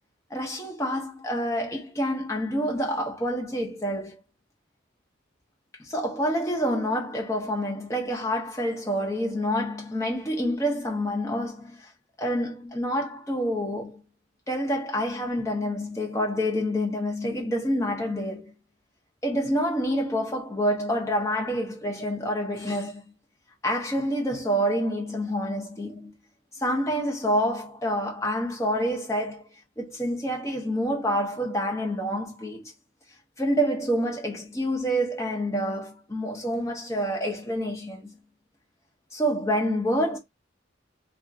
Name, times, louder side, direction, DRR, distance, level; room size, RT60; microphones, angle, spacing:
voice 1, 0.3-4.2 5.8-11.9 12.2-14.0 14.5-18.5 19.2-23.1 23.6-26.1 26.6-29.4 29.8-32.7 33.4-38.2 39.1-40.2, equal, 15° left, 0.8 m, -27 dB
2.8 x 2.5 x 2.4 m
head